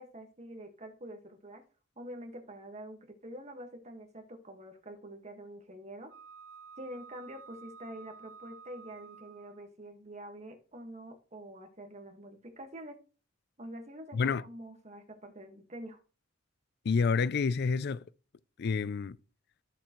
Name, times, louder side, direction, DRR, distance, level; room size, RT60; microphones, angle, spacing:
voice 1, 0.0-1.6 2.0-6.1 6.8-12.9 13.6-16.0, right 1 dB, 35° right, 1.7 m, -46 dB
Wind instrument woodwind instrument, 6.1-9.7, right 6 dB, 75° right, 1.9 m, -52 dB
voice 2, 14.1-14.4 16.8-18.0 18.6-19.2, left 5 dB, 55° left, 0.4 m, -28 dB
13.5 x 6.7 x 3.1 m
head